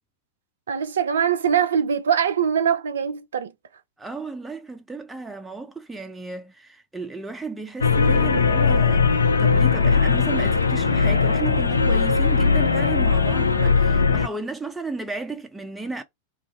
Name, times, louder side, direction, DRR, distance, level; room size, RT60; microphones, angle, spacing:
voice 1, 0.7-3.5, right 8 dB, 65° right, 0.4 m, -22 dB
voice 2, 4.0-16.0, right 3 dB, 5° right, 0.4 m, -34 dB
sound 1, 7.8-14.3, left 5 dB, 75° left, 0.4 m, -19 dB
2.5 x 2.2 x 3.7 m
figure-of-eight pair, 90°, 0 cm